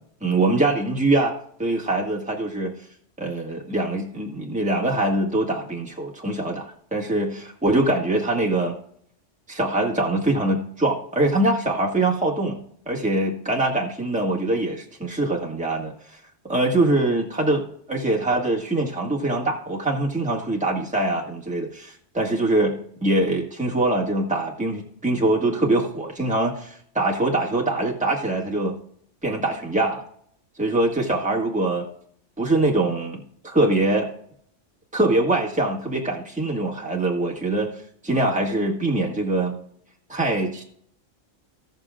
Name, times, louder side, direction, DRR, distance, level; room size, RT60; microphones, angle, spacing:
voice 1, 0.2-1.3 1.6-2.7 3.2-8.7 9.5-15.9 16.5-22.8 23.0-28.7 29.2-30.0 30.6-31.9 32.4-34.1 34.9-39.5 40.1-40.6, right 2 dB, 5° right, -2 dB, 1.7 m, -23 dB
17.0 x 6.6 x 2.4 m, 0.63 s
omnidirectional pair, 1.3 m